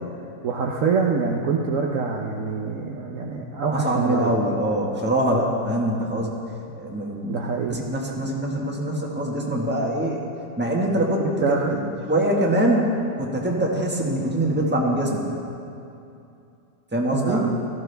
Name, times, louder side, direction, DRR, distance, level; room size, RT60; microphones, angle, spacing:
voice 1, 0.4-4.4 7.3-7.8 11.4-11.8 17.1-17.5, right 5 dB, 55° right, -1 dB, 1.0 m, -25 dB
voice 2, 3.7-6.4 6.8-7.4 7.7-10.2 10.6-11.8 12.1-15.2 16.9-17.5, right 1 dB, 5° right, -2 dB, 1.3 m, -23 dB
17.5 x 14.0 x 3.4 m, 2.7 s
omnidirectional pair, 1.9 m